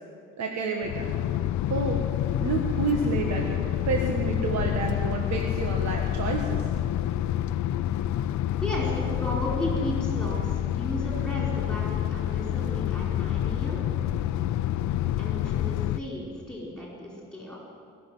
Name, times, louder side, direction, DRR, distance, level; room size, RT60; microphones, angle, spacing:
voice 1, 0.4-1.1 1.7-2.0 2.4-3.6 3.8-6.7, right 4 dB, 65° right, 1 dB, 1.5 m, -29 dB
sound 1, 0.8-16.0, left 11 dB, 70° left, 0.6 m, -28 dB
voice 2, 8.6-13.8 15.2-17.6, equal, 5° left, -5 dB, 4.7 m, -34 dB
20.5 x 7.0 x 9.4 m, 2.3 s
cardioid pair, 90°, 30 cm